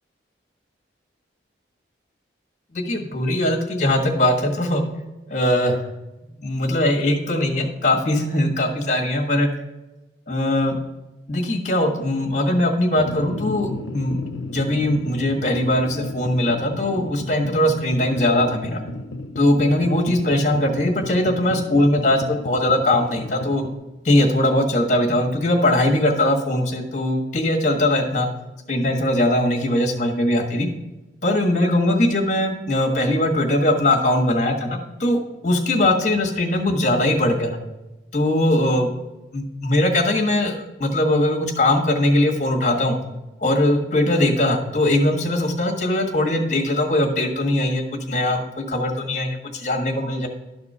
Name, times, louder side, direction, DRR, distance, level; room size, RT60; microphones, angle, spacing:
voice 1, 2.7-4.8 5.3-5.8 6.4-9.5 10.3-10.8 11.3-14.2 14.5-18.8 19.4-23.6 24.0-28.3 28.7-30.7 31.2-37.6 38.1-38.9 39.3-43.0 43.4-47.8 48.1-50.3, left 1 dB, 40° left, 1 dB, 1.5 m, -20 dB
sound 1, 12.9-23.7, left 2 dB, 85° left, 0.7 m, -33 dB
12.0 x 4.3 x 5.5 m, 1.1 s
head